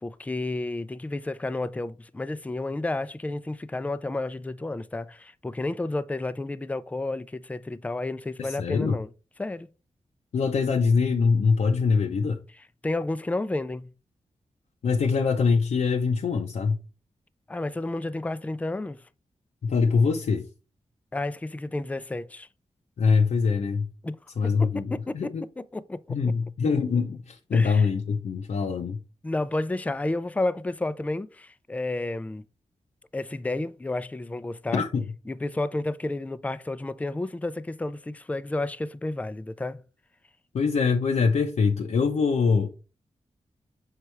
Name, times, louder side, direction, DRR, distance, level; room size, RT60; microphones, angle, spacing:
voice 1, 0.0-9.1 9.4-9.7 12.8-13.9 17.5-19.0 21.1-22.5 24.0-24.2 24.4-26.2 27.5-27.9 29.2-32.4 33.1-34.8 35.3-39.8, left 2 dB, 10° left, 0.4 m, -31 dB
voice 2, 8.4-9.0 10.3-12.4 14.8-16.8 19.6-20.4 23.0-23.9 24.4-25.4 26.1-29.0 34.7-35.0 40.5-42.7, left 5 dB, 75° left, 0.7 m, -23 dB
6.5 x 4.6 x 3.3 m
wide cardioid pair, 95°, 12 cm